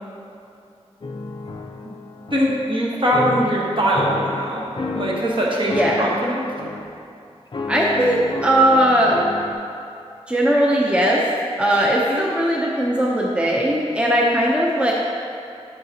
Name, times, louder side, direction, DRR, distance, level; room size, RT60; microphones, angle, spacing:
sound 1, 1.0-2.8 3.1-5.4 5.7-6.9 7.5-9.5, left 3 dB, 45° left, 0.4 m, -30 dB
voice 1, 2.3-4.6 4.9-6.4 12.1-12.2, equal, 50° right, -4 dB, 1.1 m, -21 dB
voice 2, 5.7-6.1 7.7-9.1 10.3-11.2 11.6-14.9, right 1 dB, 10° right, -3 dB, 0.6 m, -18 dB
6.6 x 5.8 x 2.8 m, 2.6 s
wide cardioid pair, 90°, 11 cm